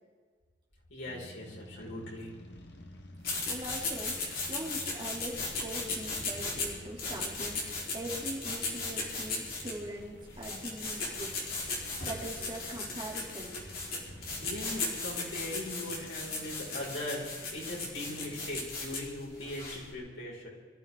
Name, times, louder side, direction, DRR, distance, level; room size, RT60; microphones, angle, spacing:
voice 1, 0.9-2.3 14.4-20.5, left 1 dB, 85° left, -3 dB, 5.9 m, -40 dB
sound 1, 1.0-18.7, left 1 dB, 70° left, 1.6 m, -52 dB
sound 2, 3.2-19.9, left 3 dB, 50° left, 4.3 m, -37 dB
voice 2, 3.3-11.7 12.0-13.5, right 1 dB, 25° right, -2 dB, 3.1 m, -42 dB
25.5 x 14.5 x 3.9 m, 1.5 s
head